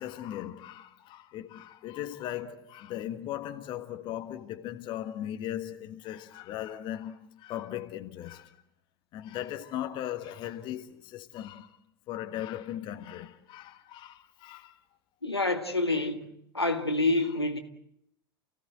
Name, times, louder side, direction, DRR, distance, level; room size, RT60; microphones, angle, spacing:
voice 1, 0.0-8.6 9.1-11.8 12.1-14.8, left 12 dB, 40° left, 1.6 m, -38 dB
voice 2, 15.2-16.3 16.5-17.6, left 2 dB, 90° left, 1.9 m, -27 dB
29.5 x 16.5 x 7.8 m
figure-of-eight pair, 90°, 13 cm